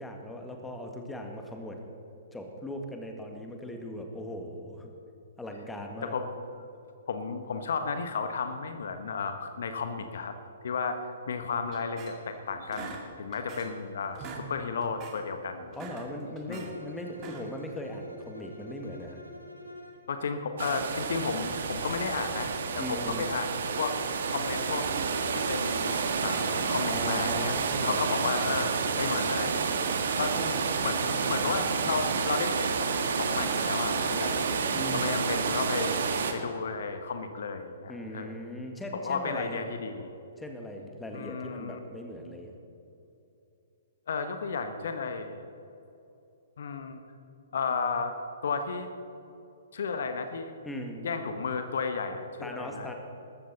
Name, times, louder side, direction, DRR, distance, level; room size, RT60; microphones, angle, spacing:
voice 1, 0.0-1.8 2.3-4.9 5.4-6.1 15.8-19.2 22.8-23.3 26.9-28.0 30.3-30.6 30.9-31.7 34.7-35.1 37.9-39.6 40.4-42.5 50.6-51.1 52.4-52.9, left 1 dB, 5° left, 3 dB, 1.8 m, -39 dB
voice 2, 7.1-10.3 10.6-15.8 16.5-16.7 20.1-24.0 24.3-24.9 25.3-25.9 26.2-27.5 27.8-29.6 30.2-30.4 30.8-34.4 34.9-35.9 36.3-38.4 38.9-40.1 41.1-41.8 44.1-45.4 46.6-47.0 47.5-48.1 48.4-48.9 49.7-50.5 51.0-52.9, left 5 dB, 55° left, 7 dB, 1.2 m, -33 dB
sound 1, 11.7-12.4 12.7-13.8 14.1-14.5 14.8-15.2 15.6-16.7 17.1-17.6, right 5 dB, 25° right, 2.3 m, -44 dB
Bowed string instrument, 16.5-20.1, left 1 dB, 85° left, 2.3 m, -47 dB
sound 2, 20.6-36.3, right 5 dB, 55° right, 1.5 m, -29 dB
20.0 x 14.0 x 4.1 m, 2.8 s
figure-of-eight pair, 120°, 0 cm